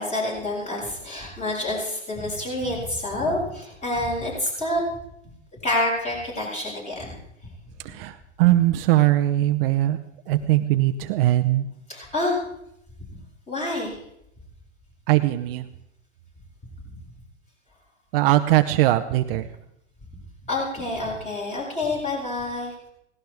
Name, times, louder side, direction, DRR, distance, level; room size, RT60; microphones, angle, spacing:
voice 1, 0.0-4.8 5.5-7.1 11.9-12.4 13.5-14.0 20.4-22.7, left 2 dB, 20° left, -4 dB, 7.5 m, -27 dB
voice 2, 7.8-10.0 10.3-11.7 15.1-15.6 18.1-19.5, right 15 dB, 50° right, 8 dB, 0.9 m, -20 dB
17.5 x 17.5 x 3.6 m, 0.79 s
hypercardioid pair, 130°, 36 cm